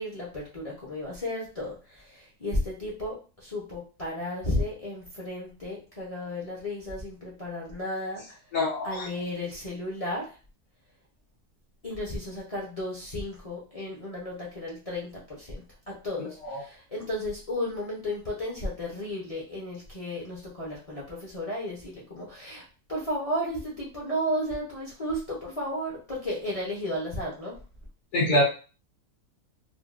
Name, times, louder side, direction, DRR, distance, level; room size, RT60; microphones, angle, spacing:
voice 1, 0.0-3.2 3.4-8.4 8.8-10.3 11.8-15.6 16.0-22.6 22.9-27.5, left 1 dB, 35° left, -5 dB, 0.6 m, -33 dB
voice 2, 8.5-9.1 16.2-16.6 28.1-28.4, left 1 dB, 70° left, -7 dB, 1.5 m, -25 dB
3.6 x 2.2 x 2.4 m, 0.34 s
omnidirectional pair, 1.6 m